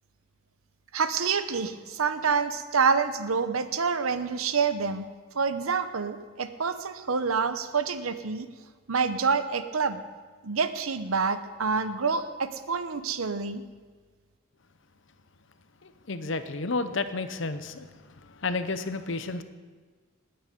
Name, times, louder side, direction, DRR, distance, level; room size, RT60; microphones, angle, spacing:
voice 1, 0.9-5.1 5.3-8.5 8.9-10.0 10.4-13.6, right 5 dB, 90° right, 11 dB, 0.9 m, -27 dB
voice 2, 15.8-19.4, left 3 dB, 60° left, 11 dB, 0.9 m, -32 dB
18.5 x 9.0 x 5.3 m, 1.4 s
head